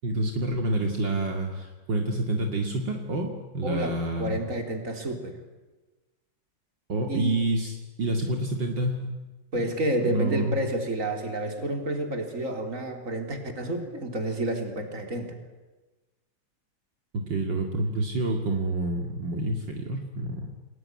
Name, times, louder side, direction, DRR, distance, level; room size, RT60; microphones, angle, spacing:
voice 1, 0.0-4.4 6.9-9.1 9.6-9.7 10.0-10.5 17.1-20.5, right 2 dB, 65° right, 3 dB, 3.0 m, -28 dB
voice 2, 3.6-5.4 7.1-7.4 9.5-15.4, right 1 dB, 40° right, 5 dB, 4.1 m, -30 dB
29.0 x 21.0 x 9.8 m, 1.2 s
omnidirectional pair, 2.2 m